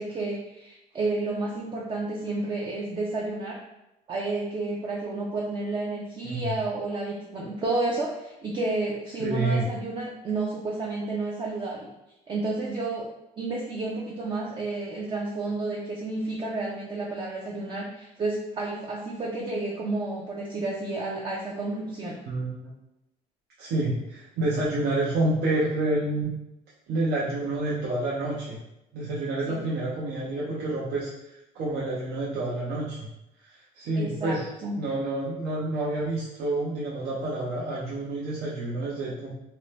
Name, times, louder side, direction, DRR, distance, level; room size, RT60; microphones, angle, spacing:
voice 1, 0.0-3.6 4.1-11.9 12.3-13.1 13.4-22.2 29.5-29.6 33.9-34.4 34.6-34.7, right 2 dB, 30° right, -3 dB, 0.4 m, -31 dB
voice 2, 9.2-9.7 22.3-22.7 23.6-26.3 26.9-28.6 28.9-31.1 31.5-33.1 33.4-34.4 34.8-39.3, right 2 dB, 70° right, -7 dB, 0.6 m, -28 dB
2.7 x 2.0 x 3.1 m, 0.90 s
cardioid pair, 110°, 17 cm